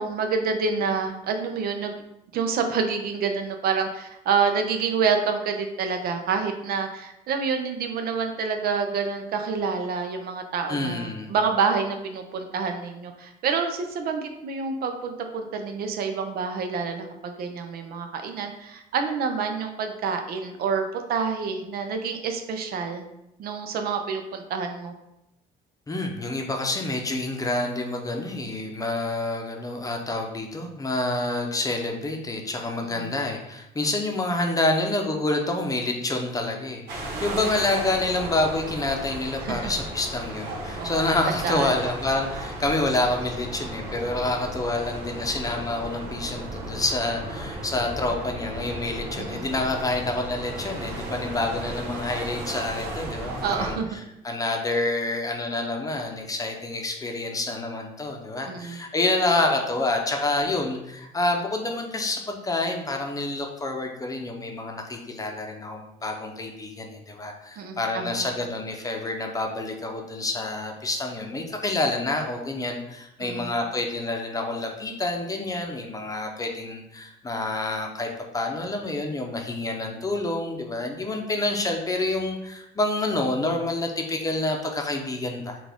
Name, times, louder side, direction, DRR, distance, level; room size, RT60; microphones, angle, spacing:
voice 1, 0.0-2.0 2.3-23.0 23.4-24.9 32.9-33.2 37.1-37.5 39.4-39.7 40.8-40.9 41.3-41.7 49.2-49.5 53.4-53.9 58.5-58.8 67.6-68.3 73.2-73.5, right 5 dB, 65° right, 5 dB, 0.6 m, -28 dB
voice 2, 10.7-11.3 25.9-85.6, left 2 dB, 20° left, 2 dB, 0.7 m, -28 dB
sound 1, 36.9-53.8, right 1 dB, 80° right, 1.3 m, -35 dB
5.9 x 2.4 x 3.5 m, 0.87 s
cardioid pair, 110°, 17 cm